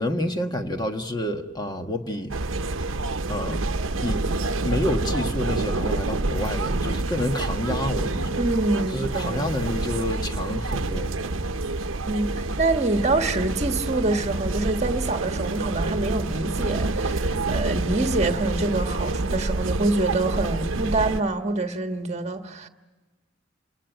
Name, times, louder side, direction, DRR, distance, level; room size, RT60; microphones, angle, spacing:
voice 1, 0.0-2.3 3.3-3.7 4.0-4.2 4.6-8.4 8.9-11.1, left 1 dB, 20° left, 1.5 m, -28 dB
sound 1, 2.3-21.2, right 2 dB, 85° right, 0.9 m, -27 dB
voice 2, 8.4-9.5 12.1-22.7, right 2 dB, 35° right, 1.5 m, -26 dB
28.0 x 18.5 x 9.1 m
head